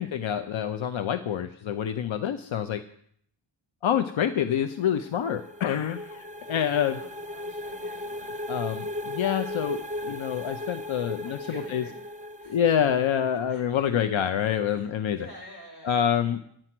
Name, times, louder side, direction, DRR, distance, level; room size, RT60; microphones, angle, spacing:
voice 1, 0.0-2.8 3.8-7.0 8.5-11.4 11.7-11.8 12.5-15.2 15.8-16.4, left 9 dB, 85° left, 9 dB, 0.7 m, -27 dB
sound 1, 4.7-13.4, left 1 dB, 15° right, 0.6 m, -37 dB
voice 2, 6.9-8.1 10.3-10.6 11.0-14.2 14.7-16.4, right 1 dB, 50° left, -1 dB, 5.0 m, -48 dB
11.0 x 8.9 x 6.0 m, 0.65 s
wide cardioid pair, 115°, 46 cm